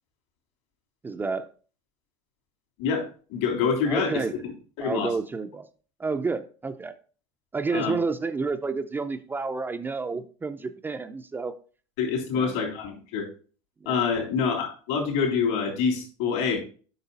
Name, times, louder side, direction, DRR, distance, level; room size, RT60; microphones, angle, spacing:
voice 1, 1.0-1.5 3.9-4.4 4.8-5.7 6.0-6.9 7.5-11.5 12.3-12.6 13.8-14.0, right 4 dB, 15° right, 0.5 m, -30 dB
voice 2, 2.8-4.5 4.8-5.1 7.7-7.9 12.0-13.3 13.8-16.6, left 6 dB, 75° left, 3.3 m, -26 dB
8.0 x 5.5 x 4.0 m
supercardioid pair, 125°, 14 cm